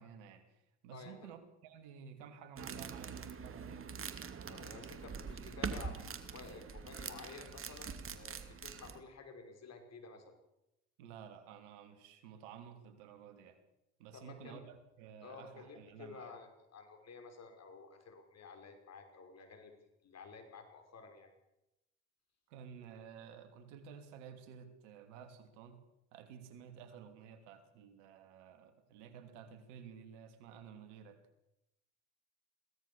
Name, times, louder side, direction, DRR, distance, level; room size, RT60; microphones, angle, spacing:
voice 1, 0.0-3.8 11.0-13.6 14.0-16.3 22.5-25.8 26.1-31.2, right 7 dB, 85° right, 8 dB, 3.1 m, -53 dB
voice 2, 0.9-1.3 4.5-10.3 14.1-14.6 15.2-19.7 20.0-21.3, left 4 dB, 45° left, 6 dB, 5.7 m, -52 dB
sound 1, 2.6-9.0, right 6 dB, 35° right, 2.5 m, -44 dB
22.5 x 17.0 x 7.1 m, 0.89 s
supercardioid pair, 75°, 35 cm